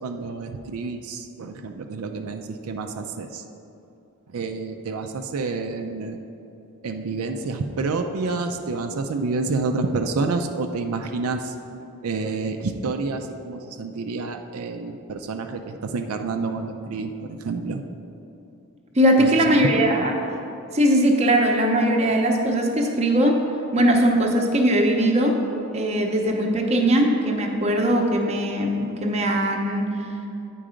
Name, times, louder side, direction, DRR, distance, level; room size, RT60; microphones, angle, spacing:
voice 1, 0.0-3.4 4.3-6.2 6.8-17.8 19.2-20.1, right 3 dB, 75° right, 5 dB, 0.4 m, -29 dB
voice 2, 19.0-20.1 20.7-23.4 23.7-25.4 25.7-29.9, right 1 dB, 30° right, 1 dB, 0.7 m, -20 dB
8.8 x 4.6 x 5.0 m, 2.8 s
head